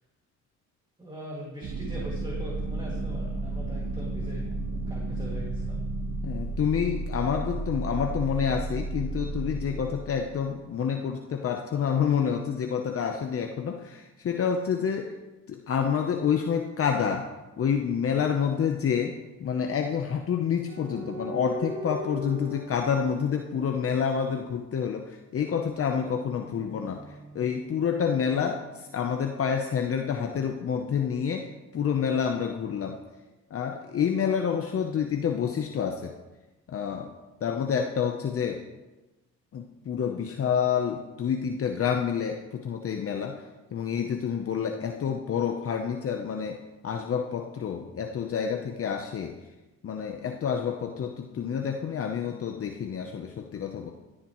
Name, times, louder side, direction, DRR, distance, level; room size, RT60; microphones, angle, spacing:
voice 1, 1.0-4.5 4.9-5.8, equal, 15° right, -3 dB, 2.3 m, -41 dB
sound 1, 1.6-10.3, right 2 dB, 60° right, 1.5 m, -32 dB
voice 2, 6.2-15.1 15.5-17.3 17.6-27.0 27.3-31.5 31.7-33.0 33.5-36.1 36.7-37.1 37.4-38.6 39.5-43.4 43.7-49.4 49.8-53.9, left 7 dB, 50° left, 3 dB, 0.8 m, -28 dB
sound 2, 20.7-24.4 25.8-29.5 30.3-31.6, right 1 dB, 35° right, 4.0 m, -42 dB
14.5 x 10.0 x 3.1 m, 1.1 s
cardioid pair, 90°, 30 cm